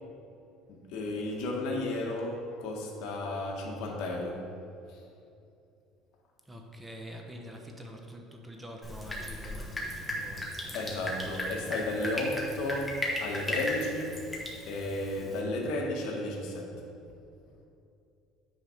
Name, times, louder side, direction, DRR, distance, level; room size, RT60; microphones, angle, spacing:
voice 1, 0.7-4.5 4.9-5.0 10.7-14.3 14.6-16.9, left 2 dB, 65° left, -1 dB, 1.1 m, -33 dB
voice 2, 6.5-11.0, equal, 15° right, 2 dB, 0.9 m, -46 dB
Drip, 8.8-15.4, left 1 dB, 15° left, 1.2 m, -36 dB
8.9 x 3.5 x 5.6 m, 2.6 s
cardioid pair, 120°, 0 cm